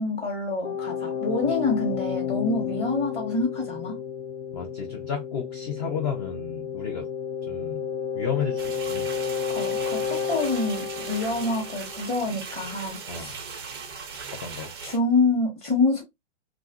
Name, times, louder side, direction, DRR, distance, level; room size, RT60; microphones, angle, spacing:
voice 1, 0.0-4.0 9.5-13.4 14.8-16.0, left 3 dB, 15° left, 1.0 m, -27 dB
sound 1, 0.6-12.3, left 7 dB, 80° left, 0.5 m, -31 dB
voice 2, 4.5-7.1 7.5-7.9 8.1-9.1 13.1-13.3 14.3-14.7, left 6 dB, 30° left, 0.5 m, -32 dB
sound 2, 8.6-15.0, right 5 dB, 20° right, 0.4 m, -38 dB
2.9 x 2.4 x 2.3 m
hypercardioid pair, 145°, 37 cm